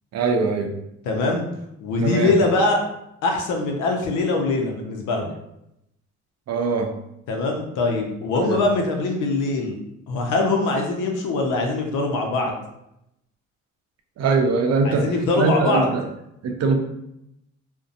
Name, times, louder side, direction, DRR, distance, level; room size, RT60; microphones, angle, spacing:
voice 1, 0.1-0.7 2.0-2.3 6.5-6.9 8.4-8.6 14.2-15.1 15.4-16.0 16.4-16.8, right 4 dB, 60° right, 3 dB, 0.5 m, -21 dB
voice 2, 1.1-1.5 1.8-2.8 3.2-5.3 7.3-9.8 10.1-12.6 14.8-15.9, left 3 dB, 90° left, 2 dB, 0.6 m, -22 dB
2.6 x 2.1 x 2.5 m, 0.82 s
cardioid pair, 90°, 30 cm